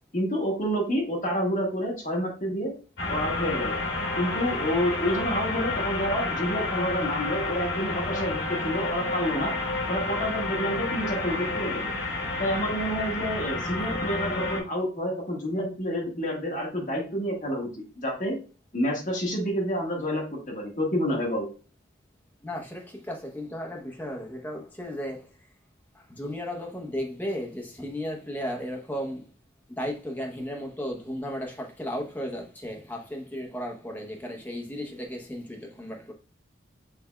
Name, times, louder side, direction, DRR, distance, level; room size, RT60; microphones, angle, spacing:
voice 1, 0.1-2.7 3.1-3.8 4.2-9.5 9.9-11.9 12.4-17.7 18.0-18.4 18.7-21.5, equal, 40° left, 1.4 m, -28 dB
sound 1, 3.0-14.6, left 3 dB, 70° left, 1.8 m, -30 dB
voice 2, 9.1-9.7 22.4-25.2 26.1-29.3 29.7-36.1, equal, 10° left, 0.7 m, -35 dB
6.5 x 3.4 x 2.2 m
head